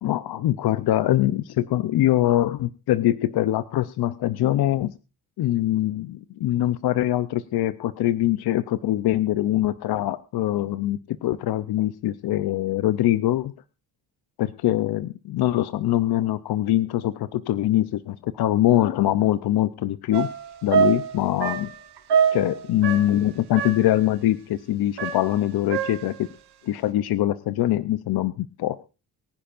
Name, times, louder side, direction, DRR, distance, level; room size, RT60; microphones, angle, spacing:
voice 1, 0.0-4.9 5.4-13.5 14.4-20.3 20.6-21.7 22.3-26.3 26.6-28.9, left 13 dB, 70° left, 14 dB, 0.7 m, -23 dB
sound 1, 20.1-23.3 23.6-24.0 25.0-26.2, right 7 dB, 85° right, 3.1 m, -25 dB
23.0 x 10.0 x 2.5 m, 0.30 s
wide cardioid pair, 175°, 39 cm